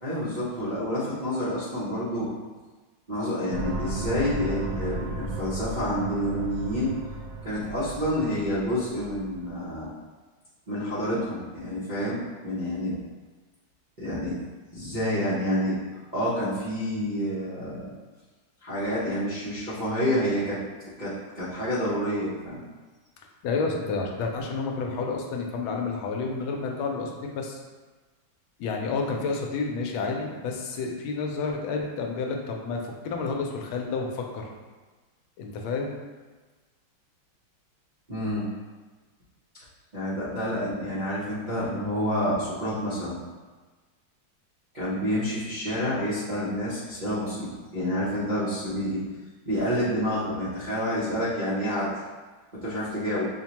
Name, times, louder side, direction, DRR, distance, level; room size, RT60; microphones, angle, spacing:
voice 1, 0.0-2.3 3.1-6.9 7.4-9.9 10.7-13.0 14.0-14.4 14.7-15.8 16.1-17.9 18.6-20.6 21.0-22.7 38.1-38.5 39.9-43.2 44.7-49.0 49.5-51.9 52.5-53.3, equal, 55° right, -12 dB, 0.5 m, -28 dB
sound 1, 3.5-9.8, right 2 dB, 85° right, 1.4 m, -35 dB
voice 2, 23.4-27.6 28.6-34.5 35.4-36.0, left 4 dB, 85° left, 1 dB, 1.4 m, -30 dB
5.4 x 2.1 x 2.9 m, 1.3 s
omnidirectional pair, 2.2 m